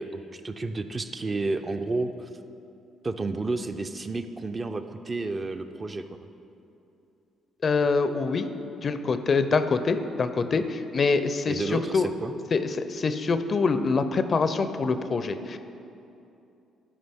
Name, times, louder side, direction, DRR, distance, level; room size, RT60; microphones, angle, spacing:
voice 1, 0.0-2.3 3.0-6.0 11.5-12.3, right 3 dB, 30° right, 8 dB, 0.4 m, -31 dB
voice 2, 7.6-8.5 8.8-12.1 12.5-15.6, left 4 dB, 45° left, 10 dB, 0.4 m, -25 dB
11.5 x 5.1 x 3.5 m, 2.8 s
cardioid pair, 80°, 0 cm